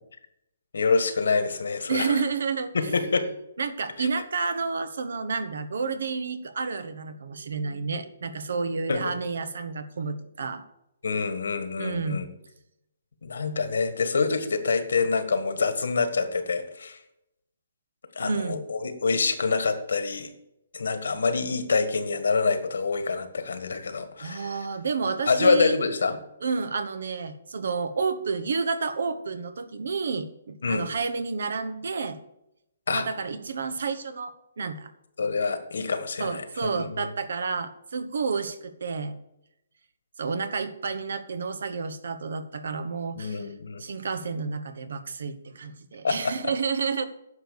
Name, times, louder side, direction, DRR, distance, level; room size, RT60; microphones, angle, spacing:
voice 1, 0.7-2.2 2.7-3.3 4.0-4.1 8.9-9.0 11.0-12.3 13.2-17.0 18.1-20.3 20.7-24.5 25.3-26.2 30.6-30.8 32.9-33.0 35.2-37.1 43.2-43.8 46.0-46.3, left 4 dB, 80° left, 9 dB, 1.6 m, -26 dB
voice 2, 1.9-2.9 3.6-10.6 11.8-12.3 18.2-18.6 24.2-25.8 26.4-32.2 32.9-34.9 36.2-39.1 40.2-43.5 43.8-47.1, right 5 dB, 70° right, 12 dB, 1.1 m, -30 dB
10.0 x 6.6 x 6.7 m, 0.84 s
hypercardioid pair, 170°, 0 cm